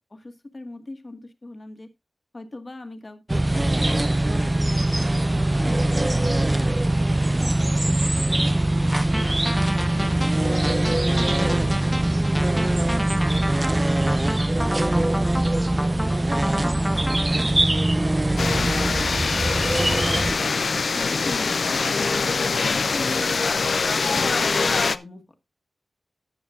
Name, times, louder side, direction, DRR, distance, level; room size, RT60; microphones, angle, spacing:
voice 1, 0.0-1.9 2.3-8.5 8.9-9.6 9.9-12.0 12.6-16.1 16.4-18.4 20.2-23.5 23.8-25.2, left 2 dB, 35° left, 6 dB, 1.6 m, -41 dB
sound 1, 3.3-20.4, right 1 dB, 20° right, 0.5 m, -22 dB
sound 2, 8.9-17.5, equal, 5° right, 1.1 m, -31 dB
sound 3, 18.4-25.0, left 4 dB, 65° left, 0.5 m, -23 dB
14.0 x 9.3 x 2.5 m, 0.24 s
wide cardioid pair, 105°, 0 cm